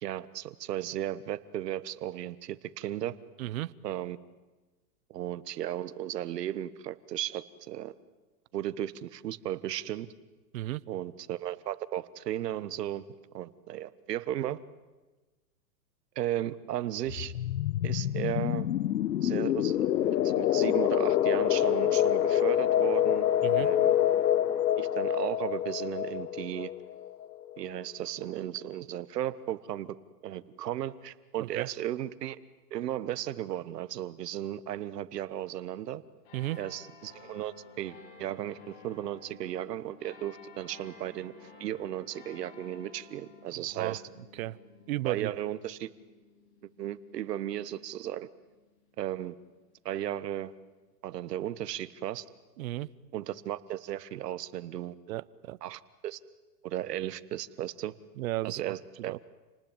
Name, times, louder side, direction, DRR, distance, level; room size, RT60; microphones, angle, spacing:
voice 1, 0.0-3.2 3.8-4.2 5.1-7.9 8.5-10.1 10.9-13.0 13.3-14.6 16.1-17.3 17.8-18.7 19.2-23.3 23.5-24.0 24.8-26.7 27.6-30.0 30.2-32.4 32.7-36.0 36.6-41.3 41.6-44.0 45.0-45.9 46.8-48.3 49.0-49.3 49.8-50.5 51.0-52.2 53.1-54.9 55.6-56.2 56.6-57.9 58.4-59.2, right 12 dB, 70° right, 1.5 m, -35 dB
voice 2, 3.4-3.7 10.5-10.8 23.4-23.7 31.4-31.7 36.3-36.6 43.8-44.0 44.3-44.6 44.9-45.3 52.6-52.9 55.1-55.6 58.2-58.7 59.0-59.2, right 16 dB, 55° right, 0.9 m, -34 dB
sound 1, 17.1-27.6, left 11 dB, 90° left, 0.9 m, -27 dB
sound 2, 36.2-49.1 49.8-49.9, left 4 dB, 50° left, 6.8 m, -54 dB
28.5 x 19.5 x 9.0 m
hypercardioid pair, 150°, 49 cm